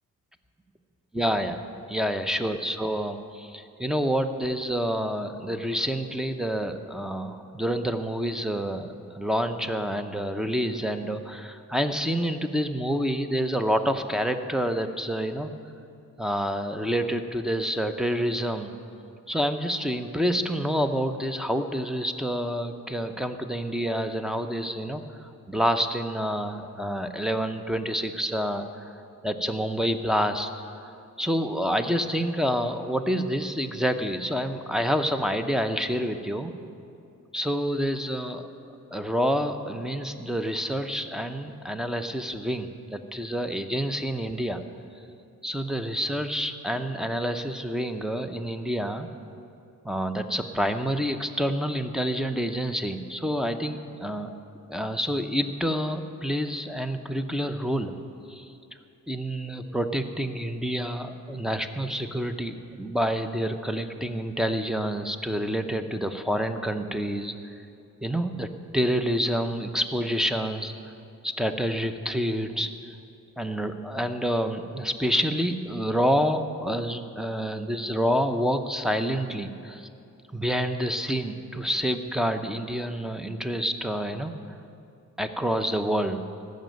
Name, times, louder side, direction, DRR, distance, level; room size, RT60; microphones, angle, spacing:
voice 1, 1.1-1.6 1.9-15.5 16.2-18.7 19.3-25.0 25.5-28.9 29.2-36.5 37.3-38.4 38.9-44.6 45.4-49.1 49.8-54.4 54.7-57.9 58.3-58.5 59.1-67.4 68.0-70.7 71.2-72.9 73.4-79.9 80.3-84.3 85.2-86.3, equal, ahead, 8 dB, 0.7 m, -28 dB
14.5 x 6.5 x 9.1 m, 2.6 s
cardioid pair, 110°, 32 cm